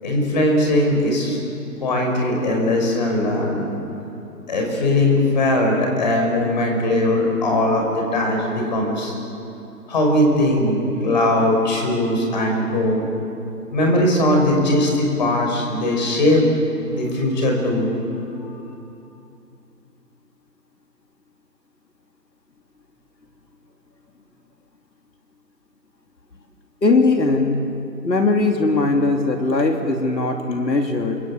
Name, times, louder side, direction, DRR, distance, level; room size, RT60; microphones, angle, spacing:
voice 1, 0.0-1.4 1.8-3.6 4.5-9.1 9.9-13.0 13.7-16.4 16.9-17.9 18.3-18.6, left 1 dB, 25° left, 1 dB, 5.5 m, -20 dB
voice 2, 26.8-27.6 28.0-31.2, left 3 dB, 80° left, 3 dB, 3.1 m, -19 dB
28.5 x 23.5 x 8.7 m, 2.8 s
figure-of-eight pair, 170°, 49 cm